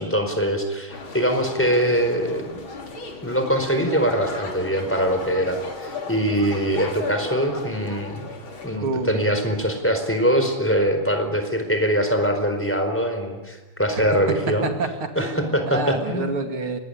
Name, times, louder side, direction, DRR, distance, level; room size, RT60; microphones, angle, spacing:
voice 1, 0.0-2.6 3.2-8.3 8.6-14.7 15.2-16.3, equal, 5° left, 5 dB, 4.3 m, -23 dB
sound 1, 0.9-8.8, left 3 dB, 65° left, 4.0 m, -36 dB
voice 2, 8.8-9.3 13.9-14.0 14.3-16.8, right 3 dB, 75° right, 5 dB, 3.4 m, -28 dB
24.0 x 20.5 x 10.0 m, 1.2 s
omnidirectional pair, 2.4 m